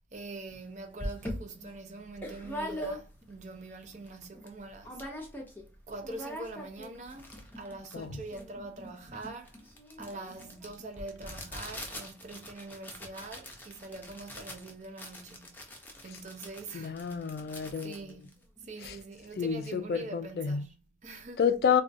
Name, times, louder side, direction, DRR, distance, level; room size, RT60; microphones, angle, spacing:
voice 1, 0.1-5.0 5.9-9.7 10.0-15.8 16.0-17.0 17.8-21.5, right 2 dB, 40° right, 0.5 m, -44 dB
sound 1, 0.5-0.6 1.0-3.4 3.8-3.9 4.1-4.5 4.8-5.7 5.9-19.0, equal, 10° left, 0.5 m, -42 dB
voice 2, 16.7-17.9 18.8-18.9 19.4-20.6 21.4-21.8, left 7 dB, 60° left, 0.3 m, -29 dB
3.6 x 2.2 x 2.5 m
head